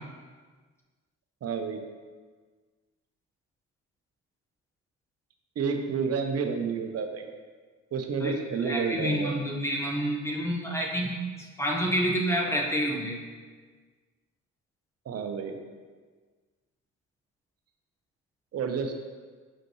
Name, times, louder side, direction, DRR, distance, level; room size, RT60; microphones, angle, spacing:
voice 1, 1.4-1.8 5.6-7.3 7.9-9.4 15.1-15.6 18.5-18.9, right 5 dB, 55° right, 5 dB, 0.8 m, -30 dB
voice 2, 8.2-11.3 11.6-13.2, equal, 10° left, -1 dB, 1.1 m, -28 dB
6.6 x 5.0 x 3.1 m, 1.5 s
cardioid pair, 90°, 30 cm